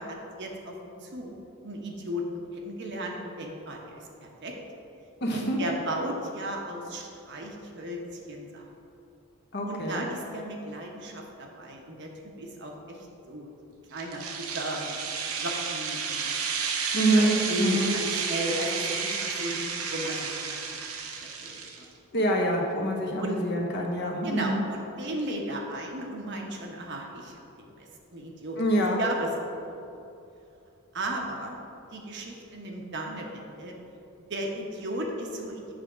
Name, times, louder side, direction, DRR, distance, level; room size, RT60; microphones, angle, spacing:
voice 1, 0.0-1.3 1.6-4.5 5.3-8.0 8.3-8.6 9.6-12.1 12.4-15.0 15.4-16.4 17.1-20.8 21.2-21.6 23.2-23.4 24.2-28.6 29.0-29.3 29.7-29.8 30.9-31.6 31.9-33.7 34.3-35.7, right 1 dB, 55° right, 0 dB, 0.9 m, -35 dB
voice 2, 5.2-5.6 9.5-10.1 16.9-17.9 22.1-24.6 28.6-29.0, right 1 dB, 50° left, 1 dB, 0.9 m, -26 dB
sound 1, 14.0-21.8, right 5 dB, 85° right, 0.8 m, -32 dB
7.6 x 3.5 x 6.1 m, 2.7 s
head